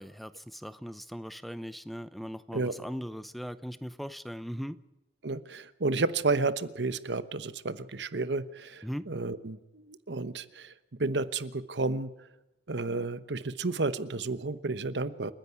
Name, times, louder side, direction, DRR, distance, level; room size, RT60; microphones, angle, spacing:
voice 1, 0.0-4.8 8.8-9.1, equal, ahead, 14 dB, 0.6 m, -39 dB
voice 2, 5.2-10.7 11.0-12.1 12.7-15.3, right 3 dB, 80° right, 14 dB, 1.0 m, -31 dB
29.0 x 10.5 x 9.6 m, 0.97 s
head